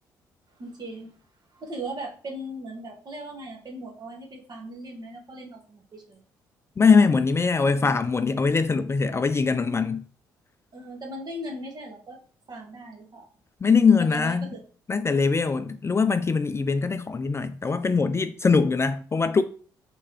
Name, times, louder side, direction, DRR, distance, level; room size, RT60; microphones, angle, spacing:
voice 1, 0.6-1.1 1.5-6.2 10.7-12.2 12.5-13.3 13.9-14.6, right 1 dB, 45° right, 1.4 m, -38 dB
voice 2, 6.8-10.0 13.6-14.5 14.9-19.4, left 5 dB, 25° left, 0.4 m, -22 dB
3.4 x 3.0 x 3.0 m
hypercardioid pair, 50°, 10 cm